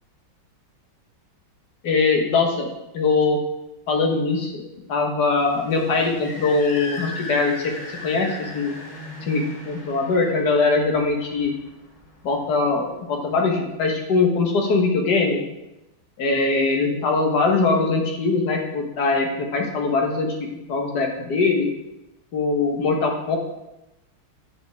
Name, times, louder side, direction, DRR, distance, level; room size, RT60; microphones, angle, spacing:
voice 1, 1.8-3.4 3.9-4.6 4.9-7.7 8.0-8.7 9.2-11.5 12.2-15.4 16.2-21.7 22.3-23.4, left 3 dB, 55° left, 1 dB, 1.7 m, -22 dB
sound 1, 5.4-12.7, left 1 dB, 35° left, 0.7 m, -38 dB
7.6 x 7.2 x 3.5 m, 0.93 s
omnidirectional pair, 2.3 m